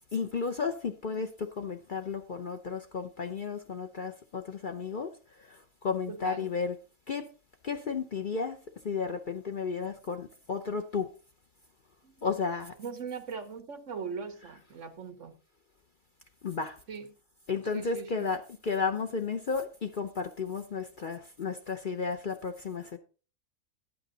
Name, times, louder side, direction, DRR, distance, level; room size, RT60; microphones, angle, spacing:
voice 1, 0.1-6.8 7.1-7.3 7.6-8.6 8.8-11.1 12.2-12.8 14.4-14.6 16.4-16.8 17.5-23.0, left 5 dB, 45° left, 7 dB, 0.7 m, -33 dB
voice 2, 6.1-6.5 12.0-12.3 12.8-15.4 16.9-17.1 17.7-18.3, right 5 dB, 65° right, 9 dB, 1.5 m, -40 dB
11.0 x 8.8 x 3.9 m, 0.36 s
omnidirectional pair, 1.4 m